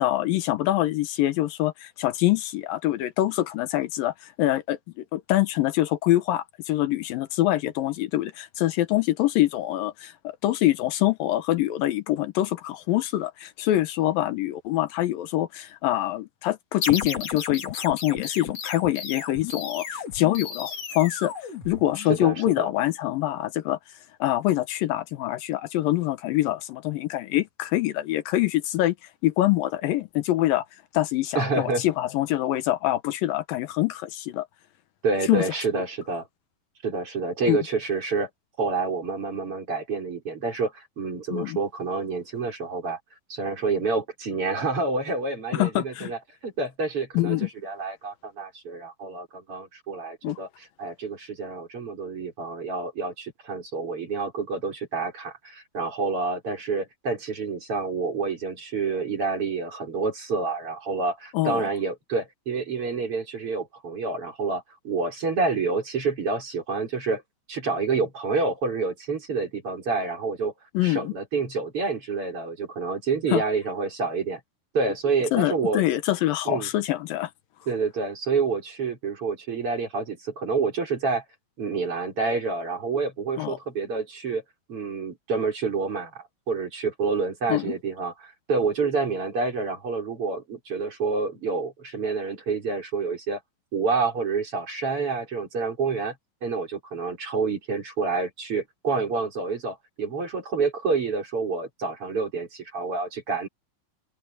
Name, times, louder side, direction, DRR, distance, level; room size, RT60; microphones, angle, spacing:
voice 1, 0.0-21.3 21.7-23.8 24.2-29.0 29.2-30.7 30.9-34.5 35.3-35.4 37.5-37.6 41.3-41.6 45.5-46.1 47.1-47.5 50.2-50.4 61.3-61.7 70.7-71.1 73.3-73.4 75.3-77.3 83.4-83.6 87.5-87.8, left 15 dB, 80° left, 2.6 m, -25 dB
sound 1, 16.8-22.2, left 6 dB, 45° left, 3.5 m, -34 dB
voice 2, 22.1-22.7 31.3-31.8 35.0-36.3 36.8-38.3 38.6-43.0 43.3-46.2 46.4-67.2 67.5-70.5 70.8-74.4 74.7-75.8 76.5-76.7 77.7-81.2 81.6-84.4 84.7-93.4 93.7-96.1 96.4-103.5, right 4 dB, 40° right, 5.2 m, -28 dB
open air
omnidirectional pair, 4.1 m